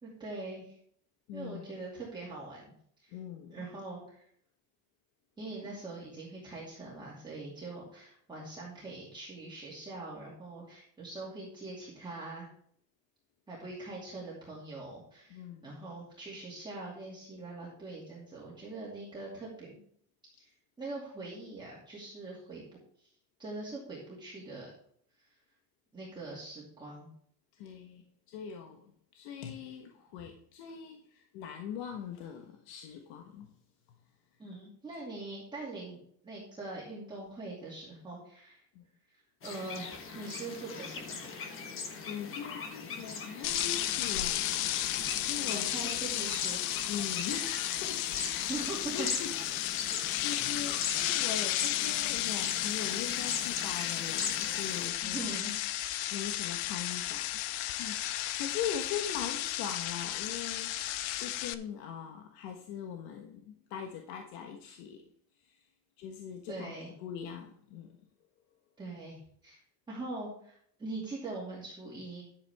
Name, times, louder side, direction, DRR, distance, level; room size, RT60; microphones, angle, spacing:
voice 1, 0.0-0.7 1.3-2.7 3.0-3.1 3.5-4.3 5.4-12.5 13.5-19.8 20.3-20.5 20.8-22.6 23.0-23.1 23.4-24.7 25.2-25.3 25.9-27.1 34.4-38.6 39.1-41.1 45.5-46.6 48.5-49.1 54.9-55.5 66.5-66.9 68.8-69.2 69.4-69.6 69.9-72.3, right 2 dB, 10° right, -6 dB, 2.3 m, -42 dB
voice 2, 1.3-1.7 3.1-3.6 15.3-15.7 27.5-33.6 33.9-34.0 38.7-38.8 42.0-44.6 45.2-46.0 46.9-48.6 48.9-49.3 49.9-55.3 56.1-57.5 57.7-65.7 66.0-68.0, left 8 dB, 70° left, 3 dB, 1.4 m, -41 dB
sound 1, 39.4-54.9, left 5 dB, 30° left, 1.3 m, -40 dB
sound 2, 43.4-61.5, left 14 dB, 90° left, 0.9 m, -33 dB
11.0 x 8.5 x 3.5 m, 0.64 s
cardioid pair, 175°, 42 cm